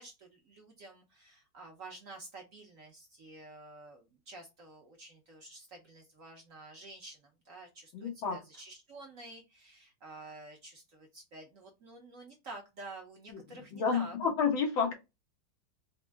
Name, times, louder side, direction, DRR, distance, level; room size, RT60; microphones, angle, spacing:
voice 1, 0.0-14.2 14.9-15.0, right 2 dB, 60° right, 0.9 m, -50 dB
voice 2, 7.9-8.4 13.3-14.9, left 6 dB, 85° left, 2.0 m, -31 dB
4.3 x 2.0 x 3.4 m
omnidirectional pair, 2.1 m